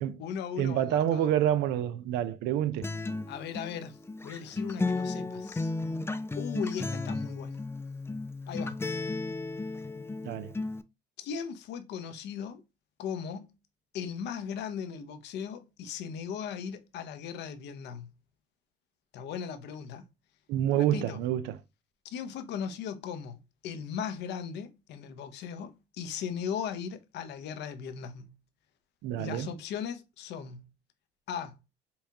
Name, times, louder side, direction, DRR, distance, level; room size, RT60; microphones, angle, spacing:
voice 1, 0.0-1.3 3.3-5.7 6.3-7.6 8.5-8.8 11.2-12.6 13.0-13.5 13.9-18.1 19.1-20.0 20.8-21.2 22.0-28.3 29.2-30.6 31.3-31.6, left 7 dB, 80° left, 0.7 m, -38 dB
voice 2, 0.6-2.9 10.2-10.5 20.5-21.6 29.0-29.5, right 11 dB, 90° right, 0.5 m, -28 dB
Acoustic guitar, 2.8-10.8, left 3 dB, 15° left, 0.4 m, -34 dB
5.5 x 2.4 x 2.7 m
supercardioid pair, 70°, 17 cm